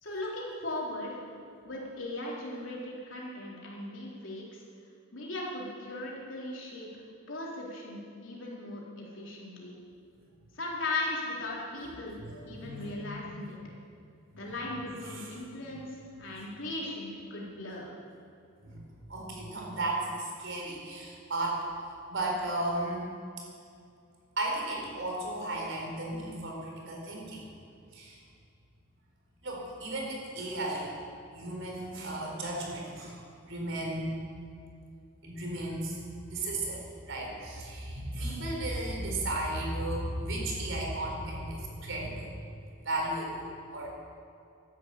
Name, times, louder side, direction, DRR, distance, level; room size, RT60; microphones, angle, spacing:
voice 1, 0.0-1.2 1.6-4.6 5.1-6.9 7.3-9.7 10.6-12.2 12.5-13.6 14.3-17.9, left 2 dB, 65° left, -4 dB, 3.9 m, -38 dB
voice 2, 12.2-13.3 14.4-14.5 15.0-15.6 18.6-18.8 19.1-21.7 22.1-23.1 24.4-27.4 27.9-28.2 29.4-30.9 31.3-33.2 33.4-34.2 35.2-36.0 36.3-42.3 42.8-43.9, right 1 dB, 65° right, -1 dB, 4.4 m, -35 dB
13.0 x 11.0 x 8.5 m, 2.4 s
head